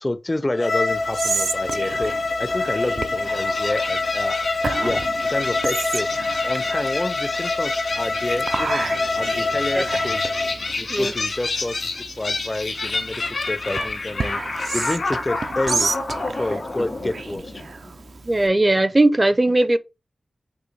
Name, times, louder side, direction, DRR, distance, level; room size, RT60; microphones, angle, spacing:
voice 1, 0.0-4.5 4.8-8.9 9.1-10.2 10.8-14.4 14.7-15.9 16.2-17.6, left 2 dB, 30° left, 0.4 m, -29 dB
Bowed string instrument, 0.5-10.6, left 3 dB, 60° left, 0.7 m, -25 dB
Whispering, 0.9-18.5, right 4 dB, 80° right, 0.5 m, -32 dB
sound 1, 3.2-17.9, left 3 dB, 80° left, 1.7 m, -30 dB
voice 2, 18.2-19.8, right 2 dB, 30° right, 0.5 m, -18 dB
6.1 x 2.6 x 3.3 m
wide cardioid pair, 60°, 0 cm